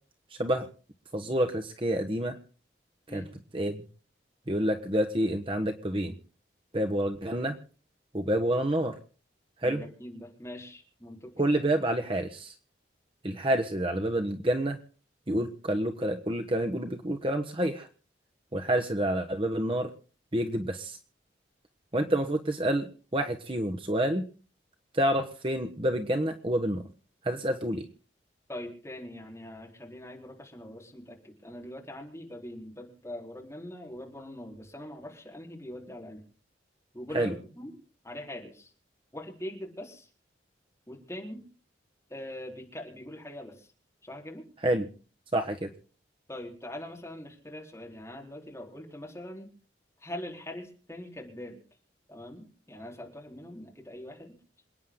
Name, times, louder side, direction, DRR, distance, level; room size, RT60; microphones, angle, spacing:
voice 1, 1.1-2.4 3.1-3.2 3.5-3.8 4.5-6.1 6.7-7.6 8.1-9.0 9.6-9.8 11.4-12.5 13.2-14.8 15.3-17.9 18.5-19.9 20.3-21.0 21.9-24.2 24.9-26.8 27.2-27.8 37.1-37.3 44.6-44.9 45.3-45.7, right 1 dB, 30° right, 4 dB, 1.2 m, -28 dB
voice 2, 9.6-11.3 28.5-36.2 36.9-37.8 38.0-38.7 39.1-40.1 40.9-41.5 42.1-43.7 44.0-44.4 46.3-49.5 50.0-51.6 52.1-54.3, left 1 dB, 15° left, -1 dB, 4.2 m, -42 dB
27.5 x 9.6 x 3.8 m, 0.38 s
head